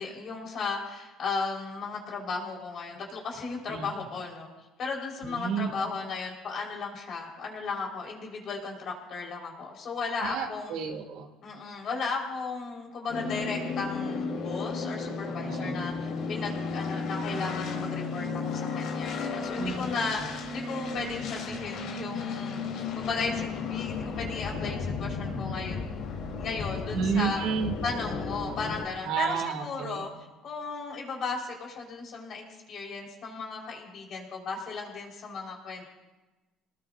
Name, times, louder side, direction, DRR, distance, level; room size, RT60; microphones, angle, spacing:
voice 1, 0.0-4.5 4.8-10.8 11.4-22.6 23.0-26.0 26.4-27.4 27.8-30.1 30.4-35.9, left 4 dB, 40° left, -1 dB, 4.5 m, -35 dB
voice 2, 5.2-5.7 10.2-11.3 15.4-15.9 19.6-20.0 26.9-27.7 29.0-30.0, right 6 dB, 70° right, 2 dB, 2.7 m, -31 dB
sound 1, 13.1-28.8, left 4 dB, 60° left, 3.5 m, -34 dB
27.5 x 19.0 x 2.6 m, 1.1 s
cardioid pair, 160°, 0 cm